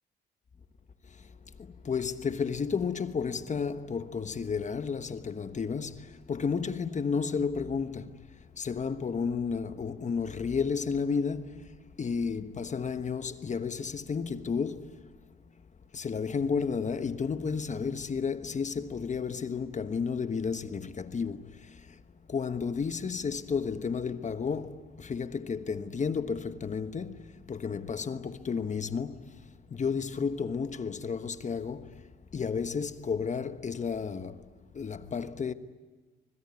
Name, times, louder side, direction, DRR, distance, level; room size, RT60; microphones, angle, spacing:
voice 1, 1.0-15.1 15.9-22.0 22.3-35.5, left 5 dB, 35° left, 1.2 m, -32 dB
24.5 x 22.0 x 9.7 m
cardioid pair, 90°, 20 cm